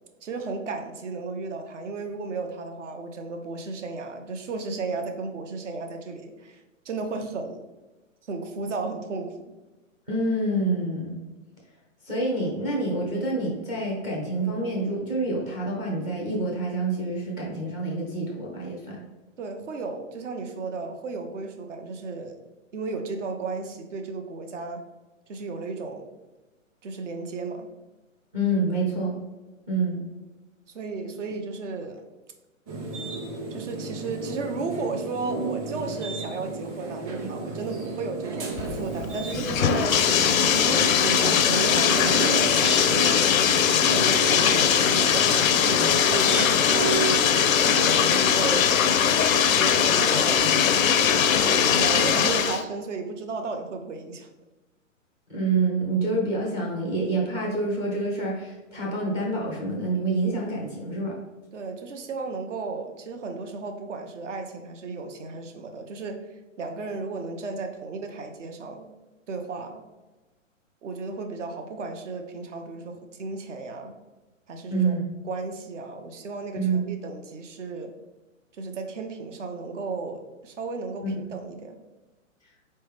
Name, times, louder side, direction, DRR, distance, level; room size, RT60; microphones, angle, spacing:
voice 1, 0.2-7.7 8.2-9.3 19.4-22.4 22.7-24.8 25.3-26.1 26.8-27.7 30.7-32.0 33.5-40.0 40.6-43.3 43.9-47.1 47.6-48.8 49.8-51.0 51.6-54.3 61.5-66.2 66.6-68.9 69.3-69.8 70.8-74.0 74.5-75.0 75.2-77.9 78.5-81.8, right 4 dB, 65° right, 5 dB, 0.9 m, -34 dB
voice 2, 10.1-11.2 12.0-19.0 28.3-29.2 29.7-30.0 55.3-61.2 74.7-75.0 76.6-76.8 81.0-81.2, right 2 dB, 10° right, -2 dB, 0.4 m, -27 dB
sound 1, 32.7-51.7, right 4 dB, 30° right, 1.0 m, -34 dB
Bathtub (filling or washing), 38.6-52.6, left 8 dB, 85° left, 0.5 m, -21 dB
4.3 x 3.3 x 3.3 m, 1.2 s
hypercardioid pair, 130°, 40 cm